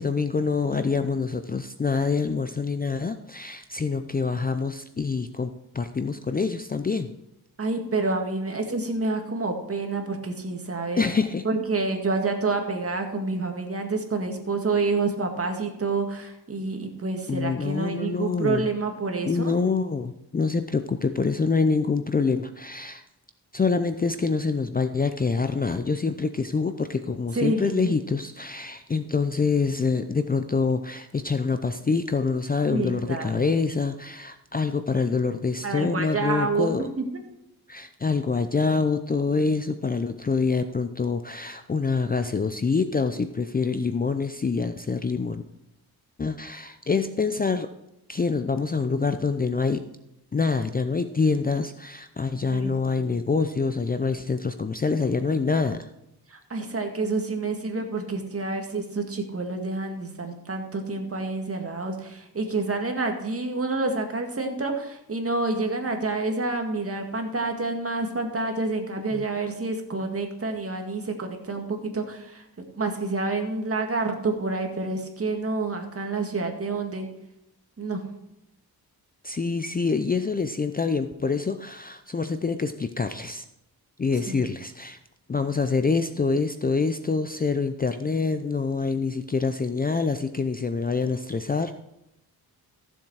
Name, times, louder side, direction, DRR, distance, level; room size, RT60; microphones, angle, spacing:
voice 1, 0.0-7.1 11.0-11.4 17.3-18.7 19.3-23.0 23.5-36.9 37.7-45.4 46.2-47.7 48.1-49.8 50.3-55.9 69.1-69.2 79.2-83.4 84.0-85.0 85.3-91.7, left 4 dB, 25° left, 9 dB, 0.5 m, -26 dB
voice 2, 7.6-11.0 11.4-19.6 27.3-27.9 32.7-33.5 35.6-37.0 52.4-53.2 56.3-72.4 72.8-77.1 77.8-78.0 84.3-84.5, right 3 dB, 35° right, 4 dB, 2.0 m, -28 dB
14.5 x 7.3 x 4.8 m, 0.85 s
wide cardioid pair, 105°, 39 cm